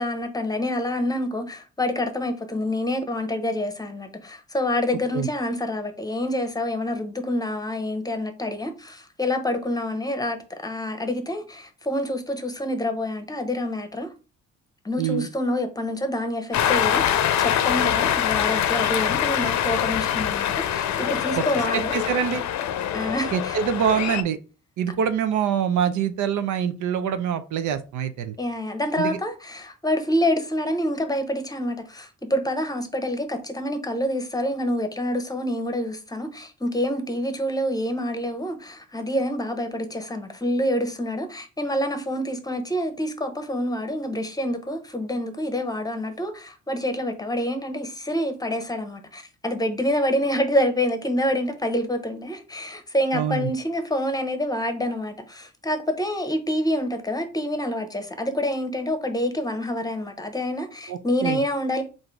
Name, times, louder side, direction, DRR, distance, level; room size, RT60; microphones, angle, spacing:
voice 1, 0.0-14.1 14.8-21.9 22.9-23.6 28.4-61.8, left 1 dB, 10° left, 0.8 m, -27 dB
Cheering, 16.5-24.2, left 10 dB, 65° left, 0.6 m, -24 dB
voice 2, 21.7-22.4 23.3-24.4 24.8-28.4 29.0-29.2 53.1-53.5 60.9-61.4, right 8 dB, 80° right, 0.6 m, -25 dB
3.8 x 2.6 x 4.5 m
cardioid pair, 90°, 30 cm